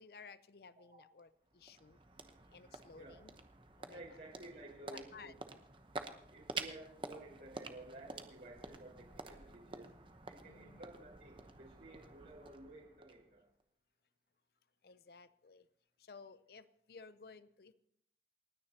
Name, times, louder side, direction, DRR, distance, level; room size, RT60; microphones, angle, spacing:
voice 1, 0.0-2.0 2.5-3.4 3.8-4.0 4.9-5.3 10.4-10.8 14.8-15.7 16.0-17.7, left 4 dB, 55° left, 15 dB, 0.6 m, -56 dB
sound 1, 1.2-13.6, right 3 dB, 30° right, 0.9 m, -50 dB
voice 2, 3.9-5.4 6.3-9.9 10.2-13.4, right 2 dB, 60° right, -4 dB, 4.9 m, -54 dB
28.5 x 9.8 x 2.9 m, 0.71 s
head